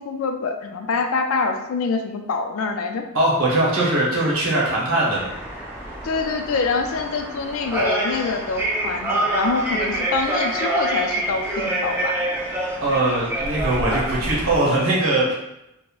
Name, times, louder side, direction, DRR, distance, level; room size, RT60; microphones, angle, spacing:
voice 1, 0.0-3.1 6.0-12.2, left 4 dB, 65° left, 5 dB, 0.3 m, -25 dB
voice 2, 3.1-5.3 12.8-15.3, right 2 dB, 65° right, -5 dB, 0.9 m, -21 dB
sound 1, 5.1-14.6, right 1 dB, 10° right, 0.4 m, -26 dB
3.5 x 2.0 x 2.3 m, 0.89 s
head